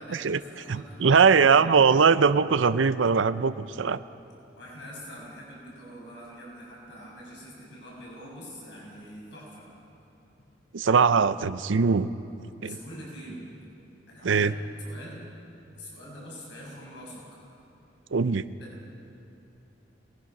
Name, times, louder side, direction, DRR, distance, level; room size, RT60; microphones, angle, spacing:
voice 1, 0.0-1.7 4.6-9.7 12.6-13.4 14.1-14.5 14.8-15.2 15.7-17.4 18.6-18.7, equal, 65° left, -4 dB, 6.5 m, -44 dB
voice 2, 0.7-4.0 10.7-12.1 12.6-12.8 14.2-14.5 18.1-18.4, right 5 dB, 85° right, 13 dB, 0.5 m, -21 dB
23.5 x 19.5 x 6.0 m, 2.9 s
head